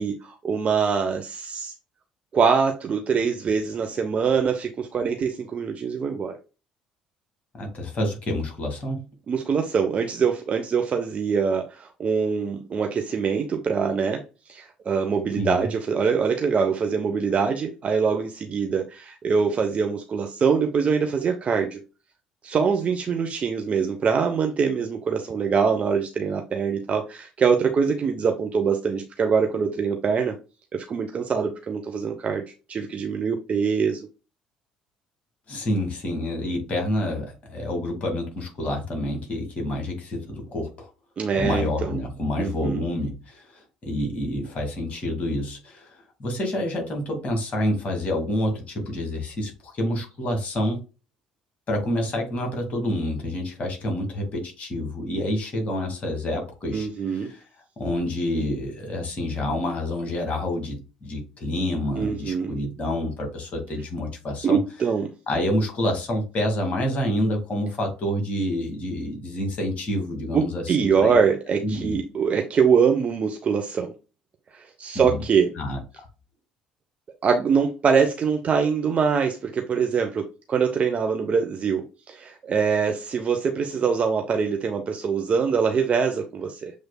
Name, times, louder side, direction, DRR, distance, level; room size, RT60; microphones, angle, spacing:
voice 1, 0.0-1.7 2.3-6.3 9.3-21.8 22.4-30.3 30.7-32.4 32.7-34.0 41.2-42.0 42.4-42.8 56.7-57.3 62.0-62.6 64.4-65.1 70.3-73.9 74.5-75.5 77.2-86.7, right 6 dB, 40° right, 4 dB, 0.6 m, -24 dB
voice 2, 7.5-9.1 15.4-15.7 35.5-40.9 41.3-50.8 51.7-57.4 57.8-64.6 65.3-71.1 71.6-72.0 74.9-75.2 75.6-76.1, left 1 dB, 45° left, 2 dB, 2.0 m, -28 dB
7.2 x 3.2 x 2.2 m, 0.31 s
figure-of-eight pair, 55°, 3 cm